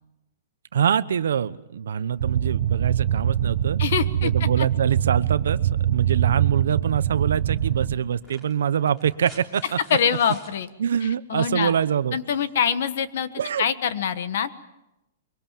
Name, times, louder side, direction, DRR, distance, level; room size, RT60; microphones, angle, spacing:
voice 1, 0.7-3.8 4.2-5.6 5.9-9.8 10.8-12.2 13.4-13.6, right 8 dB, 80° right, 14 dB, 0.9 m, -24 dB
sound 1, 2.2-8.0, right 10 dB, 50° right, 1.1 m, -23 dB
voice 2, 3.8-4.3 4.6-4.7 9.9-10.7 11.0-11.7 12.1-13.3 13.6-14.6, left 8 dB, 55° left, 12 dB, 1.4 m, -24 dB
sound 2, 8.1-10.6 12.1-12.2, right 1 dB, 10° left, 3.3 m, -49 dB
24.5 x 23.0 x 7.5 m, 0.94 s
hypercardioid pair, 175°, 0 cm